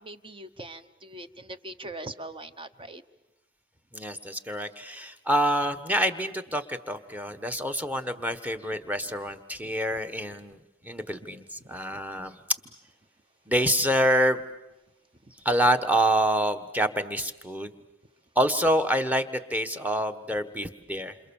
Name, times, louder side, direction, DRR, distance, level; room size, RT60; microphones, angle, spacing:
voice 1, 0.0-3.0 11.6-12.0 15.2-15.3, right 2 dB, 25° right, 10 dB, 1.0 m, -42 dB
voice 2, 3.9-10.6 10.8-12.4 13.5-14.4 15.4-17.7 18.3-21.1, equal, 5° right, 10 dB, 1.2 m, -26 dB
28.5 x 27.0 x 7.1 m, 0.95 s
head